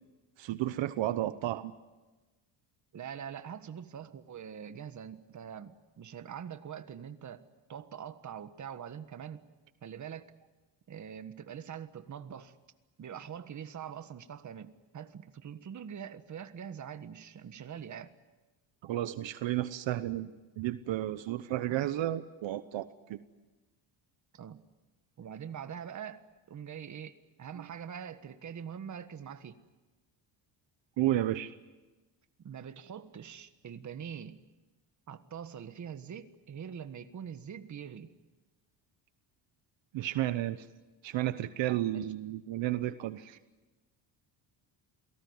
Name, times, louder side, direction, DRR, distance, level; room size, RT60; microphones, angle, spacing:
voice 1, 0.4-1.7 18.8-20.3 20.6-23.2 27.5-27.6 31.0-31.5 39.9-40.7 41.0-43.4, right 14 dB, 70° right, 12 dB, 1.1 m, -32 dB
voice 2, 2.9-7.4 7.7-9.4 9.8-10.3 10.9-12.5 13.0-18.1 21.7-21.9 24.3-24.6 25.2-26.2 26.5-29.6 32.4-34.4 35.1-38.1 41.9-42.1, right 8 dB, 40° right, 10 dB, 1.5 m, -44 dB
28.0 x 18.0 x 9.7 m, 1.2 s
cardioid pair, 140°, 46 cm